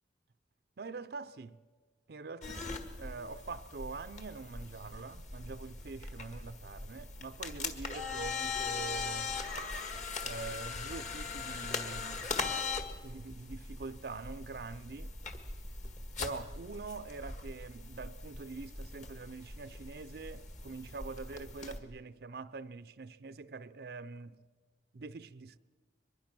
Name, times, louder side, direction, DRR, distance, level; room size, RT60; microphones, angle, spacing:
voice 1, 0.8-1.6 2.1-9.3 10.2-12.3 13.0-15.1 16.2-24.4 24.9-25.6, right 4 dB, 60° right, 0.5 m, -44 dB
sound 1, 2.4-21.8, left 4 dB, 40° left, 1.7 m, -40 dB
23.0 x 21.0 x 6.0 m
head